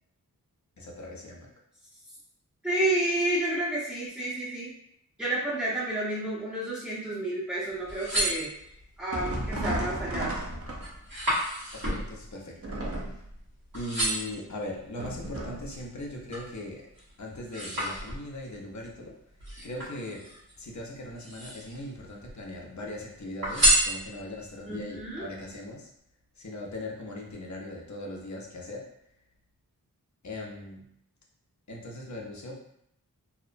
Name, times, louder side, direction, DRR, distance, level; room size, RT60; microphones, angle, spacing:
voice 1, 0.8-1.5 11.7-12.6 12.9-13.2 13.7-16.8 17.2-19.2 19.6-20.3 20.6-25.9 26.4-28.9 30.2-30.9 31.7-32.6, left 1 dB, 50° left, -1 dB, 0.7 m, -39 dB
voice 2, 2.6-4.7 5.2-8.7 9.0-10.3 24.7-25.3, right 1 dB, 5° right, -10 dB, 0.7 m, -30 dB
sound 1, 7.7-9.0 9.6-10.0 10.3-13.4 13.7-14.4 15.0-16.5 16.9-18.5 19.4-20.5 21.1-21.9 22.2-22.9 23.4-24.5 25.0-25.1, right 1 dB, 65° right, 1.2 m, -30 dB
sound 2, 9.1-11.2 12.6-13.4 15.0-15.7, right 1 dB, 40° right, 0.6 m, -34 dB
2.8 x 2.0 x 2.5 m, 0.76 s
wide cardioid pair, 55°, 37 cm